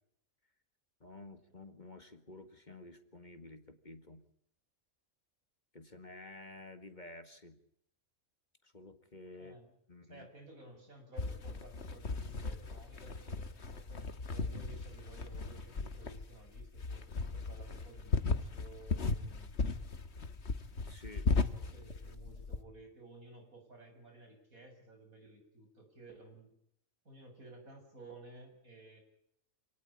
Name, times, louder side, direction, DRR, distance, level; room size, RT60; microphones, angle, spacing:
voice 1, 1.0-4.2 5.7-7.6 8.6-9.6 9.9-10.3 20.9-21.3, left 2 dB, 35° left, 9 dB, 2.0 m, -51 dB
voice 2, 9.4-9.7 10.1-19.5 21.3-26.5 27.0-29.0, right 2 dB, 80° right, 4 dB, 7.7 m, -55 dB
sound 1, 11.2-22.6, left 3 dB, 50° left, 1.7 m, -37 dB
27.5 x 18.5 x 8.6 m, 0.71 s
omnidirectional pair, 1.4 m